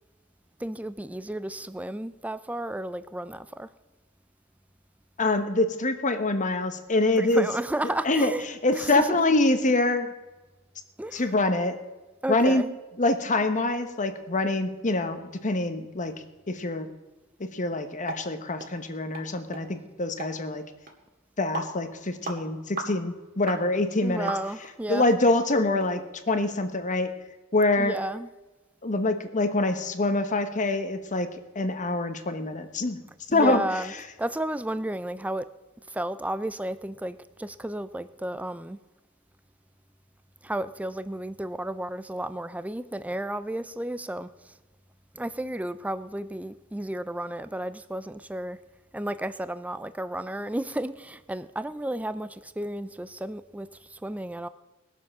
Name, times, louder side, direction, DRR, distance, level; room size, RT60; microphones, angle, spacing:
voice 1, 0.6-3.7 7.2-8.5 8.7-9.2 11.0-11.3 12.2-12.7 24.0-25.1 27.8-28.3 33.3-33.9 34.2-35.5 35.9-38.8 40.4-44.6 45.1-48.6 48.9-54.5, right 1 dB, 5° right, 0.4 m, -32 dB
voice 2, 5.2-7.5 8.0-8.3 8.6-10.1 11.1-11.8 12.3-12.6 13.0-16.1 16.5-16.9 17.4-20.6 21.4-24.3 24.9-27.1 27.5-28.0 28.8-31.3 31.5-33.0 33.3-33.6, left 2 dB, 35° left, 1.1 m, -25 dB
sound 1, 18.1-18.2 18.6-18.7 19.1-19.3 19.5-19.6 20.2-20.3 20.9-21.0 21.5-21.7 22.2-22.4 22.8-22.9 23.5-23.6 24.3-24.7 25.2-25.3 25.8-25.9 26.3-26.4, right 3 dB, 45° right, 2.1 m, -35 dB
19.5 x 7.3 x 6.1 m
head